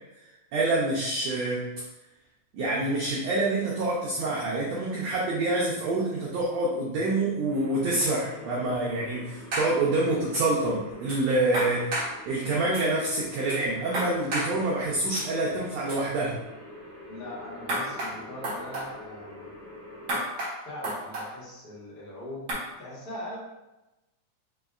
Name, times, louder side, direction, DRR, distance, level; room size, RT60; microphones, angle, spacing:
voice 1, 0.5-1.7 2.5-11.9 12.3-16.4, right 2 dB, 80° right, -4 dB, 1.5 m, -27 dB
sound 1, 7.5-20.1, left 1 dB, 80° left, 0.8 m, -46 dB
sound 2, 9.5-9.7 10.3-10.4 11.1-11.2 11.5-12.1 12.7-12.8 13.5-13.6 13.9-14.5 15.1-15.2 15.9-16.0 17.7-18.1 18.4-18.9 20.1-20.5 20.8-21.3 22.5-22.6, right 1 dB, 65° right, 1.2 m, -30 dB
voice 2, 17.1-19.5 20.6-22.5 22.8-23.4, left 1 dB, 45° left, -7 dB, 1.4 m, -41 dB
5.2 x 2.8 x 2.3 m, 0.99 s
omnidirectional pair, 3.6 m